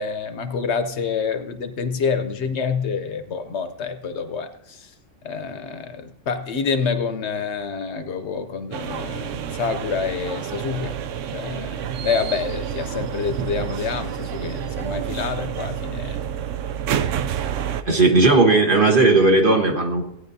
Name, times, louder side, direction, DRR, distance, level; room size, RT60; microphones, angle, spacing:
voice 1, 0.0-4.9 5.2-11.0 11.3-16.2, left 5 dB, 65° left, 9 dB, 0.9 m, -27 dB
sound 1, 8.7-17.8, right 9 dB, 75° right, 0.9 m, -29 dB
voice 2, 17.8-20.0, right 2 dB, 45° right, 2 dB, 1.4 m, -16 dB
17.5 x 9.3 x 2.7 m, 0.82 s
omnidirectional pair, 1.3 m